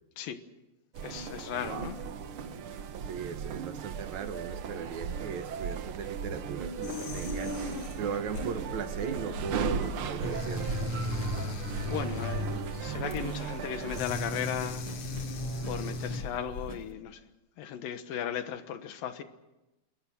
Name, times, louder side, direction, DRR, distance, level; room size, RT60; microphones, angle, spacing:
sound 1, 0.9-14.0, right 7 dB, 85° right, 1.2 m, -37 dB
voice 1, 1.0-2.0 11.1-11.3 11.9-14.9 15.6-17.2 17.6-19.2, left 9 dB, 80° left, 3.0 m, -36 dB
voice 2, 3.0-10.8, right 6 dB, 65° right, 2.2 m, -38 dB
sound 2, 6.8-16.9, left 2 dB, 50° left, 3.2 m, -37 dB
sound 3, 10.0-16.7, right 3 dB, 15° right, 1.1 m, -48 dB
27.0 x 22.0 x 6.2 m
omnidirectional pair, 4.1 m